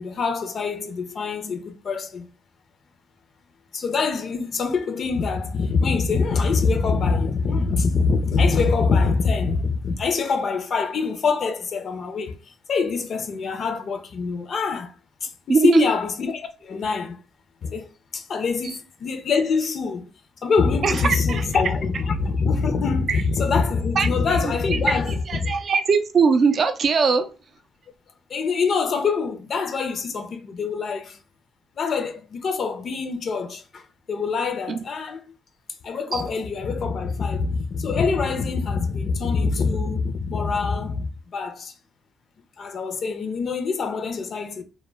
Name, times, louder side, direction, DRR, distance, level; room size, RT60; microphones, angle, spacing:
voice 1, 0.0-2.3 3.7-12.4 12.7-14.9 15.2-17.2 17.6-20.1 20.4-25.5 28.3-31.2 31.8-35.2 35.8-41.7 42.6-44.6, left 4 dB, 55° left, 0.4 m, -24 dB
voice 2, 15.5-15.9 18.6-18.8 20.8-21.4 24.0-24.1 24.7-27.2 34.7-34.8 36.1-36.2, right 5 dB, 50° right, 0.3 m, -21 dB
2.1 x 2.1 x 3.2 m
cardioid pair, 90°, 0 cm